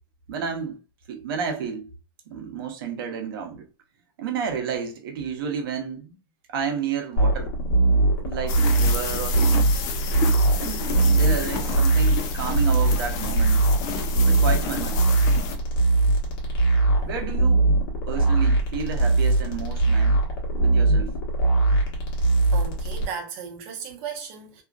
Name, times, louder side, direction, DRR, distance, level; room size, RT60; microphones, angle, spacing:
voice 1, 0.3-0.8 1.1-1.9 2.3-3.7 4.2-6.2 6.5-7.5 8.2-9.7 10.6-13.6 14.2-15.1 16.9-17.6 18.1-20.2 20.5-21.2, right 6 dB, 90° right, 0.8 m, -31 dB
sound 1, 7.2-23.1, right 2 dB, 75° left, 1.2 m, -21 dB
sound 2, 8.5-15.6, left 6 dB, 30° left, 0.3 m, -31 dB
voice 2, 22.5-24.6, right 6 dB, 40° right, 0.7 m, -36 dB
2.7 x 2.5 x 2.3 m
supercardioid pair, 170°, 12 cm